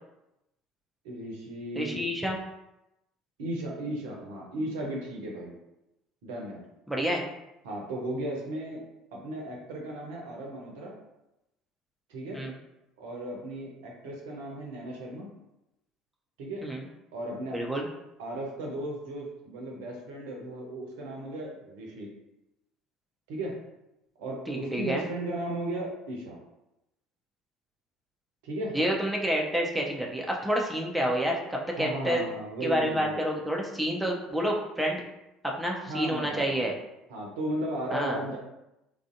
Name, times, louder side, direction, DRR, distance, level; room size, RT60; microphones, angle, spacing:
voice 1, 1.0-2.0 3.4-5.5 6.2-6.6 7.6-8.8 9.1-10.9 12.1-12.4 13.0-15.3 16.4-16.6 17.1-17.6 18.2-22.1 23.3-23.5 24.2-26.4 28.4-28.8 31.8-33.2 35.9-36.6 37.1-38.4, right 1 dB, 65° right, -1 dB, 0.6 m, -35 dB
voice 2, 1.8-2.4 6.9-7.2 12.3-12.6 16.6-16.9 17.5-17.9 24.5-25.0 28.7-32.2 32.6-35.0 35.4-36.7 37.9-38.2, equal, 5° right, -2 dB, 0.6 m, -29 dB
3.2 x 2.5 x 2.5 m, 0.91 s
figure-of-eight pair, 60°, 0 cm